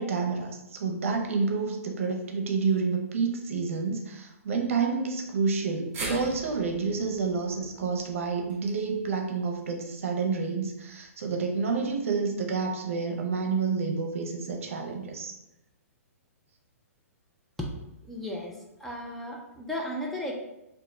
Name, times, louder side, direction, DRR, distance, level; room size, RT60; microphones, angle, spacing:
voice 1, 0.0-15.3, right 5 dB, 60° right, 2 dB, 0.7 m, -29 dB
sound 1, 5.9-10.2 10.6-10.7 11.8-11.9, right 2 dB, 25° right, 0.8 m, -42 dB
voice 2, 18.1-20.3, left 1 dB, 5° left, -2 dB, 0.4 m, -35 dB
2.9 x 2.6 x 3.6 m, 0.92 s
figure-of-eight pair, 120°, 8 cm